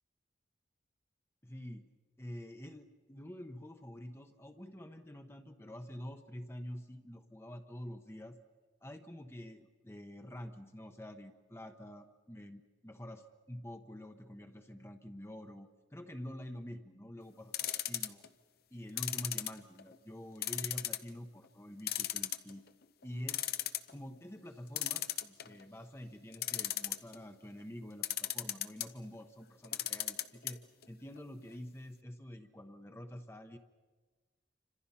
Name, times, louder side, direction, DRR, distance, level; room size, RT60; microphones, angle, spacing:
voice 1, 1.4-1.9 2.2-8.4 8.8-18.2 18.7-22.7 23.0-23.5 23.9-30.6 30.9-33.6, equal, 15° left, 6 dB, 1.0 m, -47 dB
sound 1, 17.5-18.3 19.0-19.9 20.4-21.1 21.4-21.5 21.9-22.7 23.0-23.1 23.3-23.9 24.8-25.6 26.3-27.2 28.0-28.9 29.6-30.5 30.8-30.9 31.2-31.3, left 13 dB, 55° left, 0.8 m, -35 dB
29.0 x 26.0 x 5.7 m, 1.3 s
head